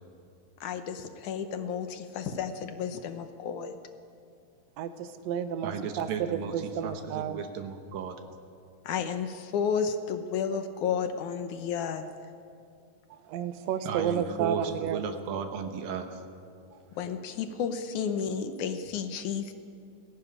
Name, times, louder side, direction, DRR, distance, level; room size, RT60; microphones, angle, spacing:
voice 1, 0.6-3.8 8.8-12.1 17.0-19.5, left 7 dB, 70° left, 8 dB, 2.2 m, -32 dB
voice 2, 4.8-7.4 13.1-15.0 16.7-16.8, right 8 dB, 65° right, 9 dB, 1.9 m, -32 dB
voice 3, 5.6-6.5 6.8-8.2 13.9-16.2, right 7 dB, 85° right, 6 dB, 2.9 m, -35 dB
17.5 x 16.5 x 9.8 m, 2.4 s
omnidirectional pair, 4.0 m